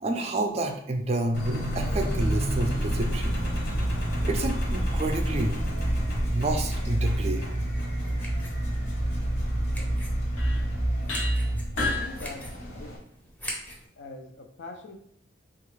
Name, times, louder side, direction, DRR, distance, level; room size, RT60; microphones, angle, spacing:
voice 1, 0.0-3.4 4.2-5.6 6.3-7.4, right 2 dB, 35° right, 4 dB, 0.4 m, -29 dB
Engine, 1.3-13.0, right 1 dB, 60° left, 0.9 m, -28 dB
sound 1, 3.1-6.6 9.7-9.8 10.4-10.7 11.1-12.1, left 3 dB, 90° left, 0.9 m, -37 dB
sound 2, 7.5-13.9, equal, 10° left, 0.6 m, -44 dB
voice 2, 11.7-12.5 12.8-13.0 14.0-14.9, left 3 dB, 75° left, 5 dB, 0.5 m, -42 dB
3.7 x 2.4 x 3.1 m, 0.66 s
head